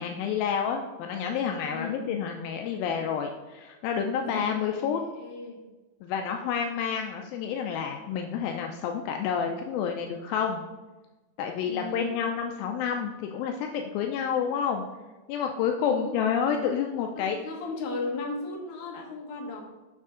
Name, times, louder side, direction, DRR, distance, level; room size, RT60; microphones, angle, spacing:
voice 1, 0.0-5.0 6.0-10.6 11.4-14.8 15.3-17.4, left 7 dB, 85° left, 3 dB, 2.3 m, -29 dB
voice 2, 1.7-2.1 4.2-4.9 5.2-5.6 11.6-12.2 15.8-16.1 17.2-19.6, left 3 dB, 65° left, -1 dB, 2.5 m, -36 dB
6.9 x 6.6 x 3.7 m, 1.2 s
omnidirectional pair, 4.2 m